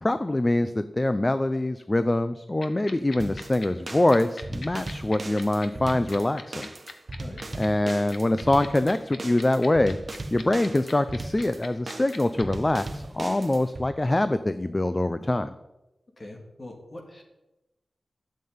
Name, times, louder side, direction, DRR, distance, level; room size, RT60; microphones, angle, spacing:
voice 1, 0.0-6.7 7.5-10.0 10.3-15.5, left 1 dB, 20° left, 11 dB, 0.5 m, -24 dB
sound 1, 2.6-12.4, left 4 dB, 70° left, 1.5 m, -40 dB
sound 2, 3.2-13.9, right 2 dB, 40° right, 1.2 m, -38 dB
voice 2, 16.2-17.2, left 1 dB, 35° left, 1 dB, 3.2 m, -42 dB
13.0 x 7.5 x 9.5 m, 0.99 s
wide cardioid pair, 125°, 0 cm